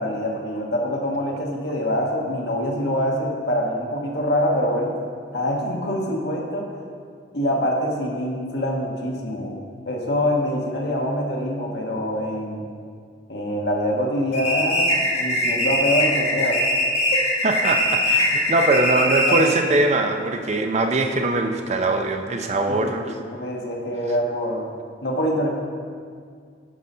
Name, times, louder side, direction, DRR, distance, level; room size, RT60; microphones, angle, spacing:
voice 1, 0.0-5.0 5.3-6.7 7.3-9.6 9.9-12.7 13.3-16.6 17.1-17.2 19.3-19.8 22.8-24.7 25.0-25.5, equal, 60° left, -1 dB, 1.3 m, -25 dB
sound 1, 14.3-19.6, left 1 dB, 35° left, 1.7 m, -21 dB
voice 2, 17.4-23.1, right 2 dB, 35° right, 5 dB, 0.5 m, -22 dB
11.5 x 4.0 x 5.5 m, 2.1 s
head